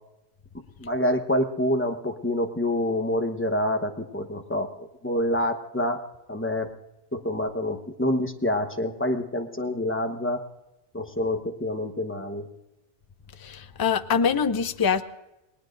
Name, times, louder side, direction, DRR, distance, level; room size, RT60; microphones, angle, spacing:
voice 1, 0.8-6.0 6.3-6.7 7.1-10.4 10.9-12.5, left 1 dB, 10° left, 5 dB, 1.0 m, -27 dB
voice 2, 13.4-15.0, left 6 dB, 30° left, 10 dB, 0.4 m, -24 dB
28.5 x 19.5 x 2.6 m, 0.94 s
omnidirectional pair, 1.2 m